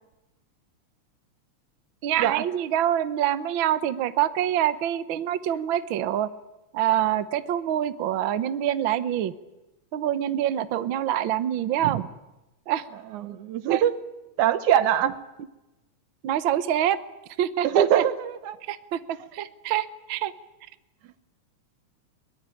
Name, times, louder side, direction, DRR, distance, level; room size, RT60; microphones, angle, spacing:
voice 1, 2.0-6.3 6.7-9.3 9.9-12.0 12.7-12.8 13.7-13.8 16.2-17.0 17.4-18.0 18.7-20.3, right 11 dB, 65° right, 12 dB, 1.3 m, -25 dB
voice 2, 13.1-14.0 14.4-15.2 17.6-18.6, right 10 dB, 80° right, 12 dB, 2.5 m, -23 dB
22.5 x 20.5 x 9.2 m, 1.0 s
omnidirectional pair, 3.4 m